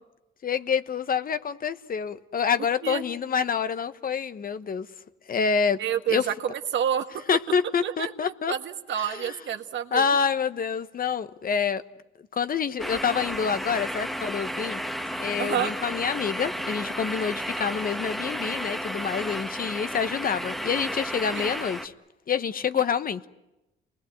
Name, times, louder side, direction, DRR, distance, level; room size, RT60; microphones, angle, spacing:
voice 1, 0.4-4.9 5.3-5.8 6.1-6.2 7.3-8.5 9.0-9.3 9.9-11.8 12.3-14.8 15.2-21.9 22.3-23.2, left 6 dB, 45° left, 1.1 m, -27 dB
voice 2, 5.8-7.2 7.8-10.1 15.4-15.7 21.3-21.5, right 9 dB, 70° right, 1.7 m, -29 dB
sound 1, 12.8-21.9, equal, ahead, 1.5 m, -33 dB
29.0 x 20.5 x 9.3 m
cardioid pair, 90°, 20 cm